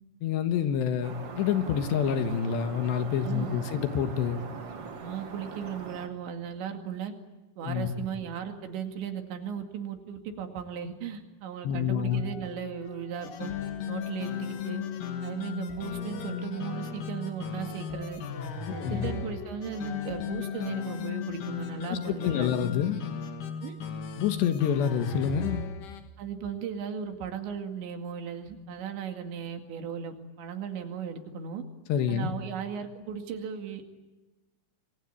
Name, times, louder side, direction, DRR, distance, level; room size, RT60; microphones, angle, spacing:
voice 1, 0.2-4.4 7.6-7.9 11.6-12.2 18.8-19.1 21.9-23.0 24.2-25.7 31.9-32.3, left 8 dB, 70° left, 3.4 m, -27 dB
sound 1, 1.0-6.1, right 5 dB, 40° right, 2.3 m, -41 dB
voice 2, 3.2-3.6 5.0-7.1 7.6-13.5 13.9-14.8 15.2-18.2 18.7-22.6 23.6-23.8 26.2-31.6 32.1-33.9, right 7 dB, 70° right, 4.3 m, -36 dB
sound 2, 12.1-21.4, left 4 dB, 90° left, 8.1 m, -48 dB
sound 3, 13.2-26.0, left 7 dB, 55° left, 2.8 m, -36 dB
28.0 x 23.0 x 8.8 m
omnidirectional pair, 5.5 m